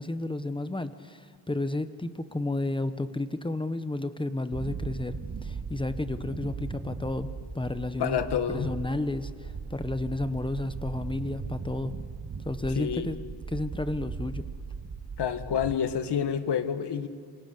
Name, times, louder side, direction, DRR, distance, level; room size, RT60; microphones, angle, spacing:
voice 1, 0.0-7.3 7.5-8.2 8.5-12.0 12.4-13.2 13.5-14.4, left 2 dB, 10° left, 11 dB, 0.9 m, -32 dB
sound 1, 4.5-15.7, right 5 dB, 40° right, 2.2 m, -38 dB
voice 2, 8.0-8.7 12.8-13.1 15.2-17.1, left 8 dB, 65° left, 10 dB, 1.7 m, -28 dB
28.5 x 25.5 x 6.7 m, 2.1 s
wide cardioid pair, 140°, 44 cm